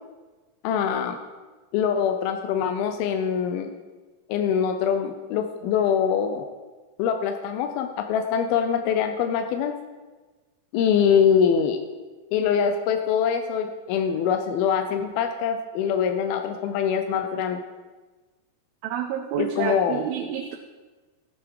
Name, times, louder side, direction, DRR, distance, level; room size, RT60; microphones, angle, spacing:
voice 1, 0.6-1.2 1.7-3.7 4.3-6.5 7.0-9.7 10.7-11.8 12.3-17.6 19.4-20.0, left 7 dB, 85° left, 6 dB, 2.6 m, -23 dB
voice 2, 18.8-20.6, right 9 dB, 85° right, 3 dB, 2.6 m, -29 dB
14.0 x 8.5 x 4.8 m, 1.3 s
omnidirectional pair, 4.2 m